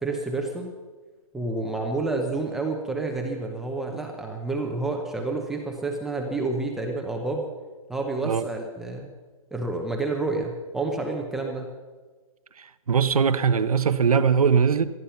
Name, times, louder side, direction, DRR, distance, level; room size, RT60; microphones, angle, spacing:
voice 1, 0.0-0.7 1.3-7.5 7.9-9.1 9.5-11.7, right 3 dB, ahead, 1 dB, 0.8 m, -29 dB
voice 2, 12.6-14.9, right 6 dB, 85° right, 11 dB, 1.1 m, -21 dB
18.0 x 12.5 x 5.7 m, 1.3 s
hypercardioid pair, 165°, 18 cm